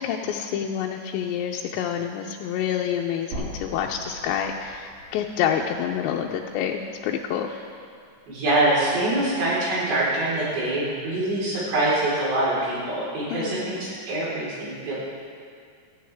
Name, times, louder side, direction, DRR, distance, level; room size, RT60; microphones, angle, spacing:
voice 1, 0.0-7.5 13.3-13.7, left 8 dB, 85° left, 0 dB, 2.9 m, -28 dB
sound 1, 3.3-7.5 7.8-7.9 9.3-9.4, right 1 dB, 55° right, 6.2 m, -41 dB
voice 2, 8.3-14.9, right 1 dB, 75° right, -8 dB, 6.5 m, -24 dB
18.0 x 14.0 x 3.5 m, 2.2 s
omnidirectional pair, 5.0 m